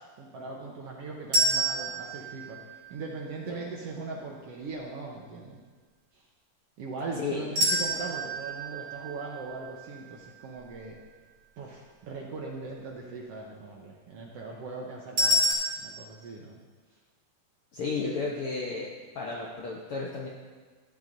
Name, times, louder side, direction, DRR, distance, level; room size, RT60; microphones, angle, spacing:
voice 1, 0.0-2.6 2.9-5.6 6.1-6.2 6.8-11.0 11.6-16.6, right 3 dB, 70° right, -2 dB, 1.6 m, -40 dB
sound 1, 1.3-3.4 7.6-10.7 15.2-15.5, equal, 40° right, 3.5 m, -29 dB
voice 2, 17.7-18.9 19.1-20.3, left 4 dB, 70° left, -3 dB, 1.3 m, -33 dB
14.0 x 10.0 x 2.7 m, 1.4 s
omnidirectional pair, 3.7 m